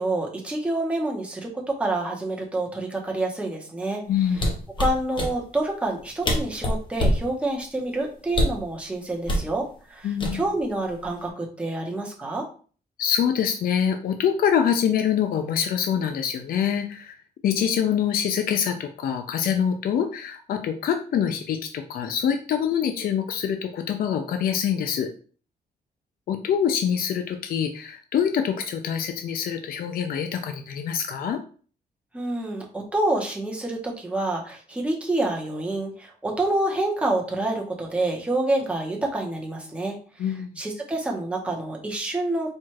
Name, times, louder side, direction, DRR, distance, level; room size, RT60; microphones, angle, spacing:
voice 1, 0.0-4.5 4.8-12.5 32.1-42.5, right 2 dB, 5° right, -1 dB, 0.9 m, -28 dB
voice 2, 4.1-4.5 10.0-10.4 13.0-17.2 17.4-25.1 26.3-31.4 40.2-40.5, left 8 dB, 60° left, 6 dB, 0.5 m, -25 dB
sound 1, 4.3-5.3 6.0-6.1 6.2-7.3 8.3-8.7 9.3-9.5 10.2-10.7 11.0-11.3, equal, 30° left, 0.9 m, -24 dB
4.5 x 2.4 x 4.6 m, 0.41 s
wide cardioid pair, 160°, 17 cm